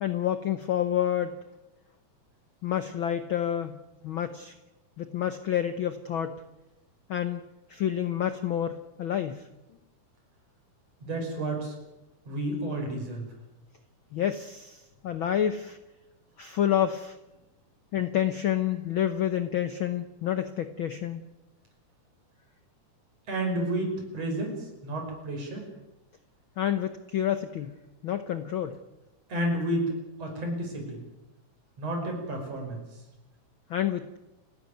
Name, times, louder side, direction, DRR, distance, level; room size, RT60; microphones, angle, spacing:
voice 1, 0.0-1.4 2.6-3.8 4.0-4.5 5.0-6.4 7.1-7.4 7.7-9.4 14.1-15.8 16.4-17.2 17.9-21.3 26.6-27.7 28.0-28.8 33.7-34.2, left 10 dB, 85° left, 10 dB, 1.1 m, -28 dB
voice 2, 11.0-11.7 12.2-13.3 23.3-25.7 29.3-29.9 30.2-31.0 31.8-33.0, right 1 dB, 50° right, 2 dB, 6.8 m, -31 dB
29.5 x 12.0 x 9.4 m, 0.99 s
omnidirectional pair, 3.7 m